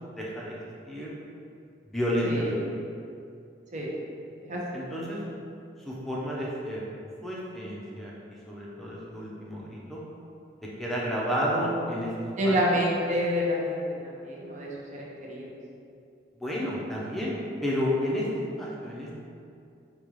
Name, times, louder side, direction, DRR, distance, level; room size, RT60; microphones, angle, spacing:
voice 1, 0.1-0.5 0.9-1.1 1.9-2.6 4.7-5.2 5.8-6.8 7.2-8.1 8.5-10.0 10.8-12.1 12.4-12.8 16.4-17.4 17.6-18.3 18.6-19.1, equal, ahead, -6 dB, 0.6 m, -31 dB
voice 2, 2.2-2.5 3.7-3.9 4.4-4.8 12.4-15.5, equal, 45° right, -3 dB, 0.7 m, -28 dB
5.1 x 2.3 x 3.1 m, 2.5 s
head